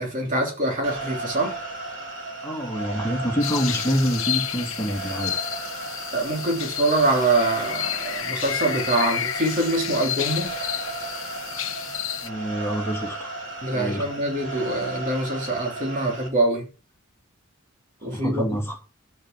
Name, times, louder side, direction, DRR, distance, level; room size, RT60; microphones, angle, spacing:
voice 1, 0.0-1.6 6.1-10.5 13.6-16.7 18.0-18.6, right 2 dB, 40° right, 3.2 m, -24 dB
sound 1, 0.8-16.3, right 2 dB, 65° right, 3.4 m, -35 dB
voice 2, 2.4-5.4 12.2-13.3 13.7-14.1 18.1-18.8, equal, 10° left, 2.7 m, -26 dB
sound 2, 3.4-12.3, left 11 dB, 75° left, 0.9 m, -31 dB
8.9 x 8.4 x 5.9 m
head